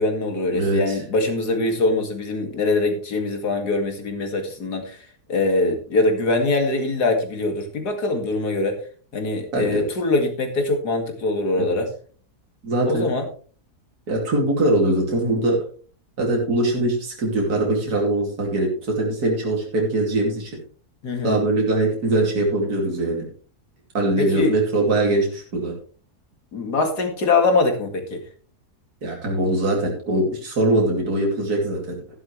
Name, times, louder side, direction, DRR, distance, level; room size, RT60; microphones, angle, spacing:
voice 1, 0.0-5.0 5.3-8.8 9.1-11.9 12.9-13.2 21.0-21.4 24.2-24.5 26.5-28.2, left 2 dB, 85° left, 4 dB, 2.7 m, -23 dB
voice 2, 0.5-1.0 9.5-9.9 11.6-11.7 12.6-13.1 14.1-15.6 16.2-20.5 21.2-23.2 23.9-25.7 29.0-32.0, right 2 dB, 75° right, -1 dB, 3.1 m, -22 dB
12.5 x 11.0 x 3.2 m, 0.41 s
omnidirectional pair, 1.7 m